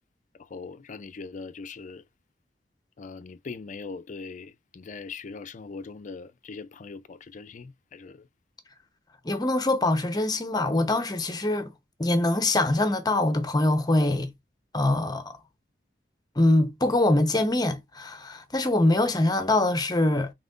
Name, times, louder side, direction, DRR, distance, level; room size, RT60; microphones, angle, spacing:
voice 1, 0.4-2.0 3.0-8.3, left 4 dB, 45° left, 0.4 m, -41 dB
voice 2, 9.2-11.7 12.0-14.3 14.7-15.4 16.4-20.3, left 2 dB, 20° left, 0.9 m, -23 dB
4.2 x 3.6 x 2.5 m
head